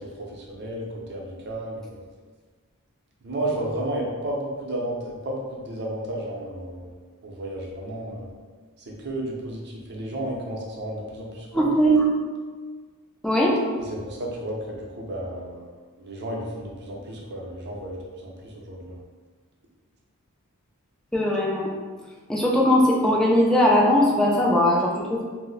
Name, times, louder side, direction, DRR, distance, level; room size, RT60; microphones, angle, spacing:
voice 1, 0.2-2.0 3.2-7.0 7.2-8.2 8.9-11.7 13.9-15.7 16.0-19.0, right 1 dB, 50° right, -2 dB, 0.6 m, -32 dB
voice 2, 11.5-12.1 13.2-13.6 21.1-21.7 22.3-25.2, equal, ahead, -3 dB, 0.4 m, -19 dB
2.5 x 2.0 x 3.9 m, 1.5 s
head